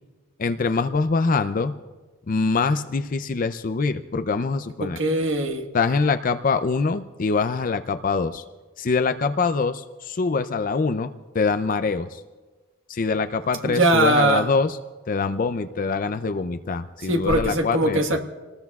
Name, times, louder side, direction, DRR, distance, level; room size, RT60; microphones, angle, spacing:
voice 1, 0.4-1.7 2.3-5.0 5.7-8.4 8.8-12.2 12.9-14.8 15.1-18.2, left 4 dB, 40° left, 0.5 m, -24 dB
voice 2, 4.8-5.7 13.6-14.5 17.1-18.2, right 2 dB, 65° right, 1.4 m, -21 dB
27.5 x 19.5 x 2.4 m
head